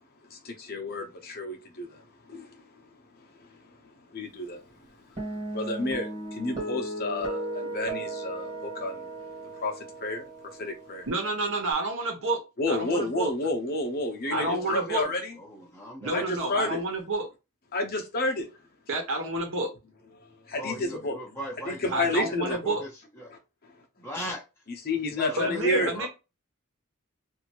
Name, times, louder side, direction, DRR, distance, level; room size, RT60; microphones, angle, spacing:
voice 1, 0.3-2.0 2.3-2.5 4.1-4.6 5.5-9.1 9.6-10.2 10.6-11.1 12.6-15.3 16.1-16.8 17.7-18.5 20.5-21.2 21.7-22.7 24.8-25.9, left 2 dB, 45° left, 0.9 m, -30 dB
Guitar, 5.2-11.7, right 2 dB, 35° right, 1.5 m, -36 dB
voice 2, 11.1-12.4 12.7-13.3 14.3-15.1 16.0-17.3 18.9-19.7 21.9-22.8 25.4-26.1, right 2 dB, 65° right, 1.1 m, -29 dB
voice 3, 14.3-15.1 15.4-16.9 20.5-22.9 23.2-23.3 24.0-24.4 25.1-26.1, equal, 10° left, 0.7 m, -39 dB
2.8 x 2.7 x 3.0 m
head